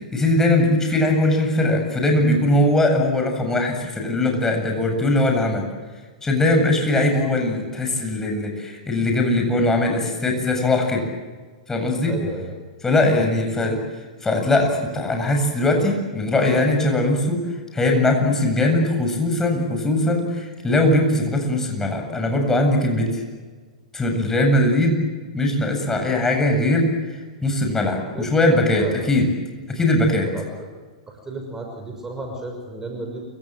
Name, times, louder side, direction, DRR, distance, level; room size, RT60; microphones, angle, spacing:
voice 1, 0.0-5.6 6.2-11.0 11.7-12.1 12.8-13.8 14.2-17.4 17.7-23.1 23.9-25.0 25.3-29.3 29.7-30.3, left 1 dB, 10° left, 3 dB, 7.9 m, -20 dB
voice 2, 12.1-12.5 13.2-13.3 28.1-28.4 28.7-29.1 30.3-30.7 31.1-33.2, right 2 dB, 15° right, 3 dB, 6.0 m, -33 dB
29.0 x 25.5 x 7.8 m, 1.4 s
figure-of-eight pair, 105°, 4 cm